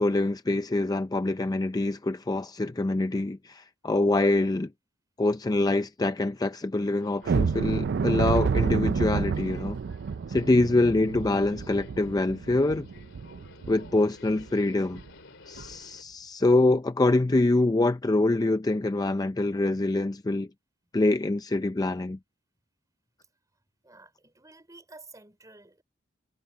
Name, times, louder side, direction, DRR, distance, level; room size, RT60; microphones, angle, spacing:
voice 1, 0.0-4.7 5.2-9.8 10.3-12.9 13.7-15.0 15.5-20.5 20.9-22.2, left 2 dB, 20° left, 0.4 m, -25 dB
Subway metro underground, 7.0-16.0, left 3 dB, 70° left, 3.2 m, -53 dB
sound 1, 7.2-14.0 14.4-14.5 14.9-15.1 15.6-15.7, right 5 dB, 55° right, 0.4 m, -29 dB
voice 2, 23.8-25.8, right 2 dB, 20° right, 5.0 m, -51 dB
head